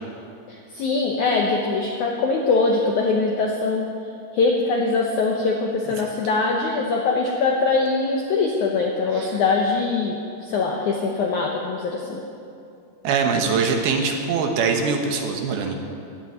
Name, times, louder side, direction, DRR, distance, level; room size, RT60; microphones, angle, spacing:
voice 1, 0.5-3.9 4.3-12.2, left 3 dB, 75° left, 0 dB, 1.8 m, -22 dB
voice 2, 13.0-15.8, right 5 dB, 70° right, 3 dB, 2.9 m, -22 dB
11.5 x 11.0 x 9.1 m, 2.5 s
omnidirectional pair, 4.9 m